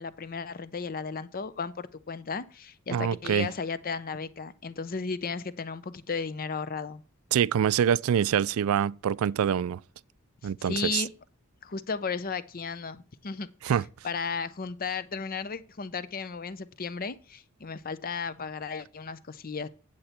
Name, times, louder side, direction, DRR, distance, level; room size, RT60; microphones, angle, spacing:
voice 1, 0.0-7.0 10.6-11.1 11.6-13.5 14.0-19.7, left 5 dB, 45° left, 0.6 m, -34 dB
voice 2, 2.9-3.5 7.3-9.8 10.4-11.0 13.6-13.8, right 8 dB, 75° right, 0.3 m, -25 dB
8.7 x 7.9 x 4.3 m
head